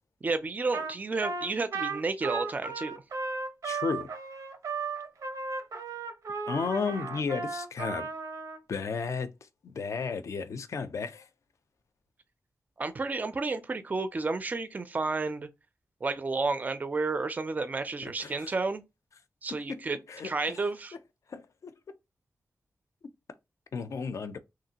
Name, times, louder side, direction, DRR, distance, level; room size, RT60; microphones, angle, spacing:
voice 1, 0.2-2.9 12.8-15.5 16.0-18.8 19.4-20.0 20.2-20.9, right 3 dB, 30° right, 0.3 m, -31 dB
Trumpet, 0.7-0.9 1.2-8.6, right 4 dB, 80° right, 0.6 m, -35 dB
voice 2, 3.6-4.1 6.5-8.1 8.7-9.3 9.6-11.3 18.0-18.5 19.7-20.6 21.3-21.7 23.7-24.4, left 5 dB, 60° left, 0.4 m, -33 dB
2.9 x 2.5 x 2.7 m
wide cardioid pair, 135°, 6 cm